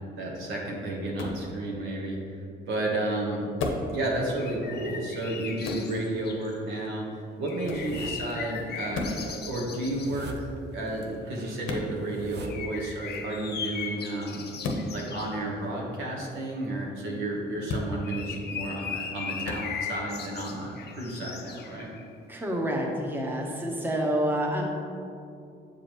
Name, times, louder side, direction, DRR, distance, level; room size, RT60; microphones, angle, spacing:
voice 1, 0.2-3.5 3.9-10.3 10.7-14.5 14.9-21.9, right 1 dB, 85° right, -2 dB, 1.2 m, -32 dB
sound 1, 1.2-1.4 3.6-3.9 5.6-5.9 7.6-7.9 8.9-9.2 11.6-11.9 14.6-14.9 17.6-17.9 19.4-19.6, left 3 dB, 85° left, 0.8 m, -32 dB
sound 2, 4.4-6.6 7.4-10.2 12.4-15.4 17.6-22.2, left 6 dB, 55° left, 0.6 m, -38 dB
sound 3, 7.5-8.3 8.7-13.2 13.4-14.3, right 3 dB, 55° right, 0.6 m, -43 dB
voice 2, 22.3-24.6, right 1 dB, 10° right, -1 dB, 0.9 m, -28 dB
7.2 x 4.9 x 3.1 m, 2.5 s
cardioid pair, 90°, 20 cm